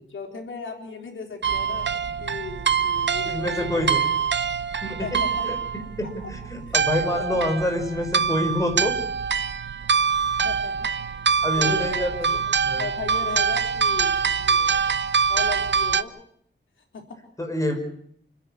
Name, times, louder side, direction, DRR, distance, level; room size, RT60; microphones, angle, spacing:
voice 1, 0.1-1.9 2.2-4.2 5.0-5.5 6.7-6.8 7.1-7.2 10.4-10.9 11.6-12.4 12.8-14.8 15.3-16.1 16.8-17.2, left 5 dB, 90° left, 2 dB, 4.2 m, -36 dB
sound 1, 1.4-16.0, right 6 dB, 65° right, 0.8 m, -24 dB
voice 2, 3.2-4.0 4.8-5.6 6.0-9.0 10.4-10.5 11.4-12.3 12.6-12.9 17.4-17.8, left 1 dB, 15° left, 4 dB, 5.4 m, -27 dB
28.5 x 10.5 x 9.8 m, 0.67 s
wide cardioid pair, 115°, 20 cm